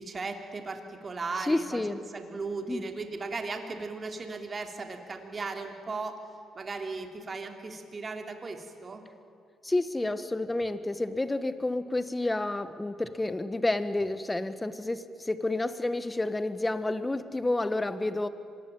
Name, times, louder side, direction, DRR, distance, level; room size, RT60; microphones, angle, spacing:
voice 1, 0.0-1.8 2.1-6.2 6.5-9.0, right 3 dB, 35° right, 5 dB, 3.1 m, -37 dB
voice 2, 1.4-2.0 2.7-2.8 9.6-18.3, left 2 dB, 15° left, 12 dB, 1.5 m, -30 dB
26.0 x 19.5 x 9.2 m, 2.6 s
cardioid pair, 90°, 0 cm